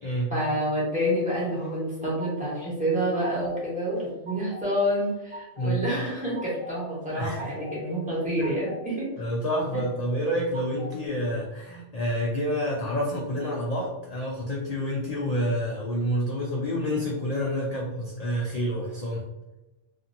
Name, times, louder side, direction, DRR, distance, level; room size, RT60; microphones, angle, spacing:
voice 1, 0.3-9.1, equal, 5° right, -7 dB, 1.0 m, -28 dB
sound 1, 1.6-2.6 2.9-3.7 4.0-4.6 5.0-5.7 6.1-6.8 7.1-7.8 8.1-8.8 9.2-9.9 10.2-11.0, right 1 dB, 75° right, 1.0 m, -43 dB
voice 2, 9.2-19.2, equal, 90° left, -3 dB, 0.3 m, -28 dB
2.8 x 2.5 x 2.5 m, 1.0 s
omnidirectional pair, 1.3 m